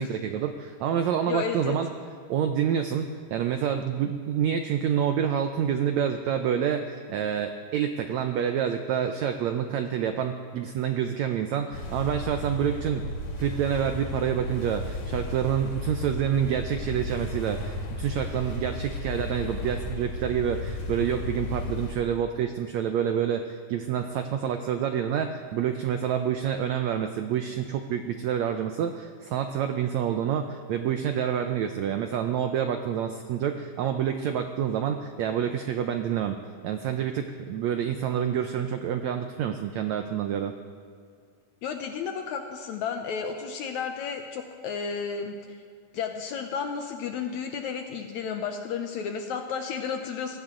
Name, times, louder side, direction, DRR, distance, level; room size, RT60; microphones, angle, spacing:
voice 1, 0.0-1.9 2.3-13.0 13.4-36.4 36.6-40.5, right 8 dB, 80° right, 7 dB, 1.6 m, -28 dB
voice 2, 1.3-1.8 41.6-45.4 45.9-50.4, left 6 dB, 70° left, 5 dB, 1.8 m, -32 dB
sound 1, 11.7-21.9, left 1 dB, 55° left, 2.6 m, -34 dB
21.5 x 16.5 x 3.8 m, 2.2 s
omnidirectional pair, 4.0 m